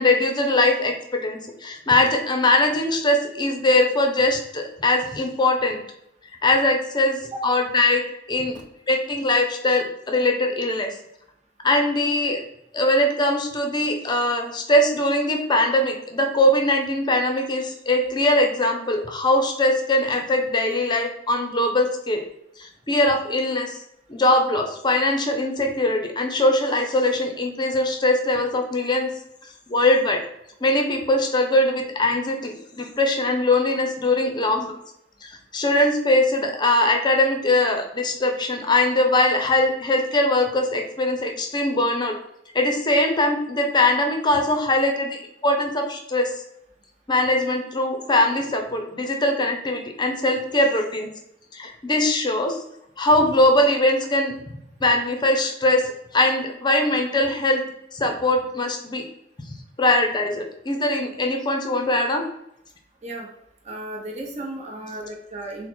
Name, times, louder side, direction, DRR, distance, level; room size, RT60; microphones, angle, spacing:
voice 1, 0.0-5.8 6.4-8.0 8.3-8.6 8.9-10.9 11.6-12.4 12.7-22.2 22.6-23.8 24.1-29.1 29.7-30.2 30.6-34.7 35.5-42.1 42.5-46.3 47.1-51.1 51.5-52.6 53.0-54.4 54.8-55.8 56.1-57.6 57.9-59.0 59.8-62.2, left 1 dB, 25° left, 3 dB, 0.6 m, -21 dB
voice 2, 63.6-65.7, right 1 dB, 40° right, -1 dB, 0.9 m, -34 dB
4.1 x 2.2 x 4.3 m, 0.79 s
head